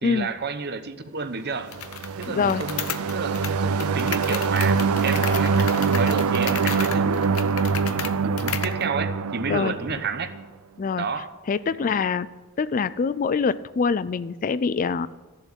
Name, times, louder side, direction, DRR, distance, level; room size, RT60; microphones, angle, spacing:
voice 1, 0.0-1.7 2.2-10.3 11.0-11.3 11.7-11.9, right 4 dB, 45° right, 10 dB, 0.9 m, -31 dB
sound 1, 1.7-8.8, left 9 dB, 70° left, 0.8 m, -34 dB
sound 2, 1.7-10.4, right 5 dB, 75° right, 0.5 m, -24 dB
voice 2, 2.3-2.6 9.5-9.7 10.8-11.1 11.5-12.3 12.6-15.1, left 5 dB, 35° left, 16 dB, 0.3 m, -24 dB
14.0 x 7.2 x 9.0 m, 1.3 s
head